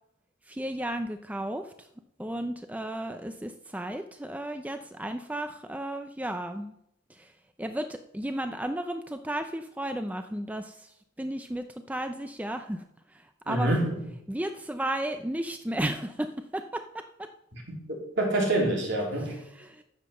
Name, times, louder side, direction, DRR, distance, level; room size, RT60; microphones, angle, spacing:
voice 1, 0.5-1.9 2.2-6.8 7.1-7.3 7.6-12.8 13.1-13.7 14.3-17.3 19.5-19.8, right 1 dB, 5° right, 7 dB, 0.5 m, -34 dB
voice 2, 13.5-14.0 17.5-17.6 17.9-19.4, right 1 dB, 60° right, -1 dB, 3.6 m, -26 dB
11.0 x 7.4 x 6.6 m, 0.81 s
head